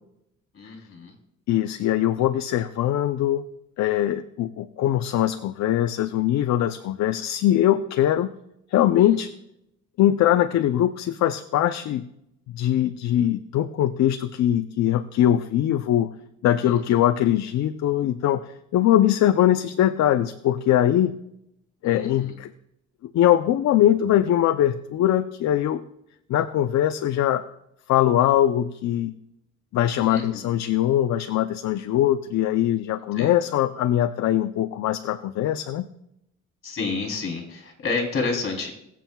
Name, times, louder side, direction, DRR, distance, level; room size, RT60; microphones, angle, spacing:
voice 1, 0.5-1.1 9.0-9.1 16.6-16.8 21.8-22.3 30.0-30.4 33.1-33.4 36.6-38.7, left 4 dB, 45° left, 2 dB, 3.2 m, -30 dB
voice 2, 1.5-3.4 3.8-8.3 8.7-9.3 10.0-12.1 12.5-16.1 16.4-21.2 21.8-22.5 23.0-25.8 26.3-27.4 27.9-29.2 29.7-35.9, left 12 dB, 65° left, 9 dB, 0.6 m, -22 dB
22.5 x 7.5 x 2.3 m, 0.80 s
cardioid pair, 130°, 30 cm